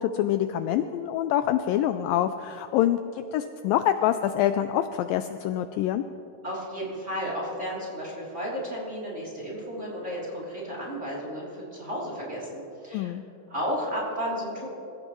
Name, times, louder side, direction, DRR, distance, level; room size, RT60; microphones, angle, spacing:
voice 1, 0.0-3.0 3.3-6.0 12.9-13.2, left 11 dB, 80° left, 9 dB, 2.1 m, -25 dB
voice 2, 6.4-13.1 13.5-14.7, equal, 20° right, -5 dB, 3.1 m, -33 dB
26.5 x 15.5 x 3.1 m, 3.0 s
omnidirectional pair, 4.3 m